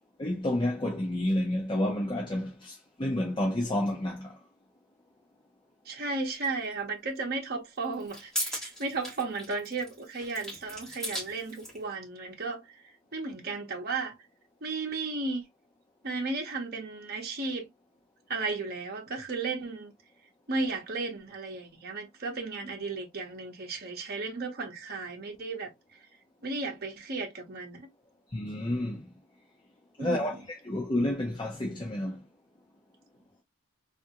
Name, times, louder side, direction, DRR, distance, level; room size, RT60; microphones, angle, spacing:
voice 1, 0.2-4.4 28.3-29.1 30.0-32.2, left 1 dB, 25° left, 0.6 m, -30 dB
voice 2, 5.9-12.7 13.1-14.1 14.6-15.4 16.0-17.7 18.3-19.9 20.5-25.7 26.4-27.9 30.0-30.2, right 3 dB, 45° right, 0.8 m, -34 dB
sound 1, 6.4-6.5 7.8-11.8, equal, 5° left, 1.9 m, -37 dB
3.5 x 2.5 x 2.8 m
head